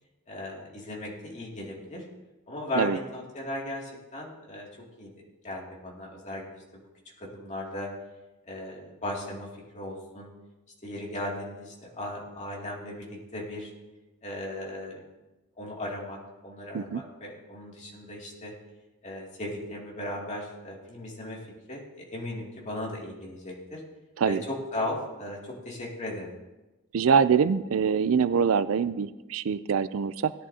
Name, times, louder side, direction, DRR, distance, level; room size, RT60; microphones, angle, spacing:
voice 1, 0.3-2.0 2.5-4.7 5.0-5.1 5.4-6.8 7.2-7.9 8.5-9.5 9.7-10.3 10.8-13.7 14.2-15.0 15.6-18.5 19.0-21.4 21.7-23.8 24.3-26.3, left 1 dB, 35° left, -3 dB, 2.5 m, -37 dB
voice 2, 26.9-30.3, right 6 dB, 75° right, 15 dB, 0.4 m, -24 dB
18.0 x 10.5 x 2.8 m, 1.1 s
head